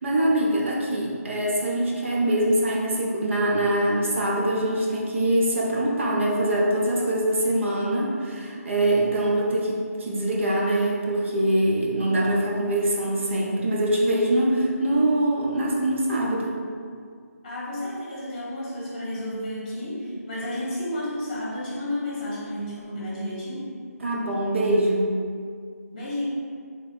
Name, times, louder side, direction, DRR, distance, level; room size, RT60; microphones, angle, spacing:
voice 1, 0.0-16.6 24.0-25.1, right 1 dB, 50° right, -3 dB, 0.7 m, -23 dB
voice 2, 17.4-23.7 25.9-26.3, left 1 dB, 30° left, -7 dB, 1.1 m, -31 dB
3.0 x 3.0 x 4.2 m, 2.1 s
figure-of-eight pair, 170°, 9 cm